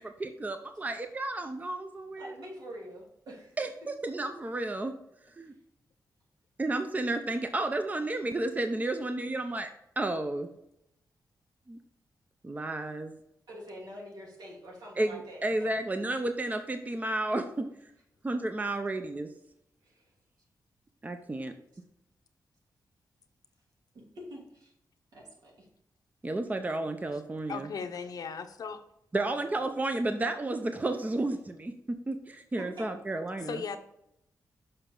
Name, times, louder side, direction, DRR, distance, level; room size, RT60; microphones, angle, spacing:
voice 1, 0.0-2.3 3.6-4.9 5.4-5.5 6.6-9.7 10.0-10.5 11.7-11.8 12.4-13.1 15.0-17.7 18.2-19.3 21.0-21.5 26.2-27.7 29.1-31.7 32.1-33.6, right 2 dB, 25° right, 7 dB, 0.7 m, -32 dB
voice 2, 2.2-3.6 5.4-5.5 13.5-15.7 19.8-20.0 24.1-24.7 25.1-25.7 32.6-32.8 33.4-33.5, equal, 80° right, -3 dB, 3.0 m, -46 dB
voice 3, 27.5-28.8 33.5-33.8, left 5 dB, 70° left, 8 dB, 0.8 m, -37 dB
6.7 x 5.5 x 3.8 m, 0.78 s
cardioid pair, 90°, 7 cm